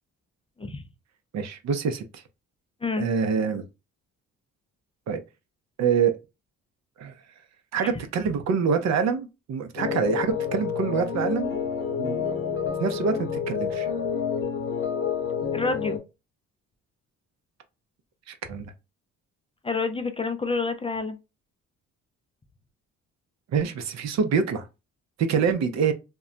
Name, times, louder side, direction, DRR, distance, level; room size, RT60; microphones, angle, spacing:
voice 1, 1.3-2.2 3.0-3.6 5.1-5.2 5.8-6.1 7.0-7.1 7.7-11.5 12.0-12.2 12.8-13.9 18.3-18.7 23.5-24.7 25.2-25.9, right 6 dB, 60° right, 0.6 m, -25 dB
voice 2, 2.8-3.1 7.8-7.9 15.5-16.0 19.6-21.2, left 4 dB, 20° left, 0.4 m, -28 dB
sound 1, 9.8-16.0, left 7 dB, 45° left, 0.8 m, -29 dB
2.2 x 2.1 x 3.8 m
cardioid pair, 90°, 30 cm